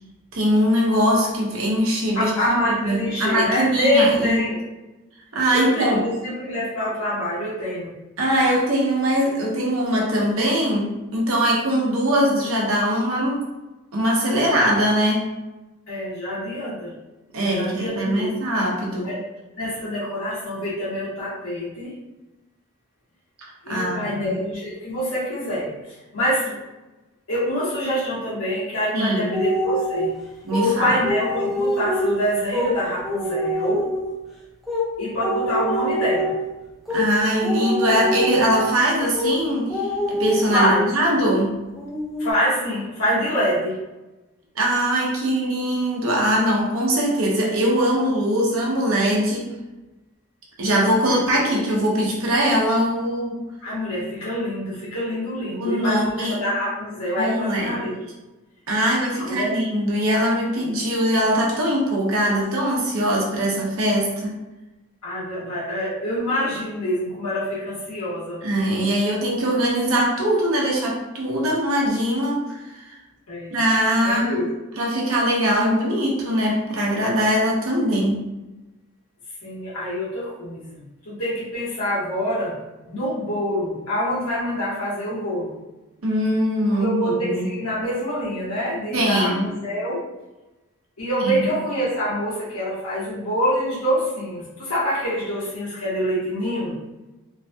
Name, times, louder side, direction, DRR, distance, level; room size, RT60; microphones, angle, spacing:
voice 1, 0.3-2.3 2.8-4.4 5.3-6.0 8.2-13.4 13.9-15.2 17.3-19.1 23.7-24.3 28.9-29.3 30.4-31.0 36.9-41.5 44.5-49.5 50.6-53.4 55.5-56.4 57.2-57.8 58.7-64.3 68.4-72.9 73.5-74.4 74.8-78.2 86.0-87.5 88.9-89.4 91.2-91.5, equal, 75° right, -3 dB, 0.8 m, -21 dB
voice 2, 2.1-4.6 5.5-7.9 15.9-16.9 17.4-18.4 19.0-19.2 19.5-21.9 23.6-26.6 27.3-30.1 30.6-33.8 35.0-36.3 40.5-40.8 42.2-43.8 51.0-51.6 53.6-58.0 59.2-59.6 65.0-68.4 73.3-73.5 74.0-74.5 79.4-85.5 86.7-90.0 91.0-96.7, equal, 90° left, -9 dB, 1.3 m, -26 dB
sound 1, 29.3-30.1 30.5-30.7 31.0-32.7 33.0-34.1 34.7-34.9 35.2-36.5 36.9-37.1 37.4-38.8 39.1-39.4 39.7-40.9 41.2-41.4 41.8-42.3, equal, ahead, 0.6 m, -24 dB
3.1 x 2.2 x 2.7 m, 1.1 s
head